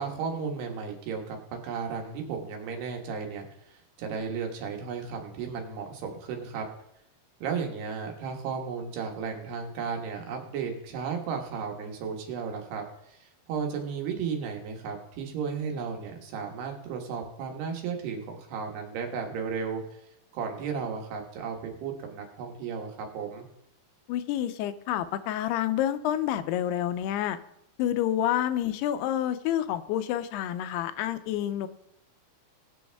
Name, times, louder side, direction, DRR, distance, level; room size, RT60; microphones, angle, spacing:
voice 1, 0.0-1.4 1.6-6.7 7.4-12.8 13.1-19.8 20.3-23.5, right 6 dB, 90° right, 3 dB, 3.6 m, -34 dB
voice 2, 24.1-27.4 27.8-31.7, left 11 dB, 90° left, 11 dB, 2.7 m, -28 dB
20.0 x 7.1 x 3.5 m, 0.78 s
omnidirectional pair, 4.5 m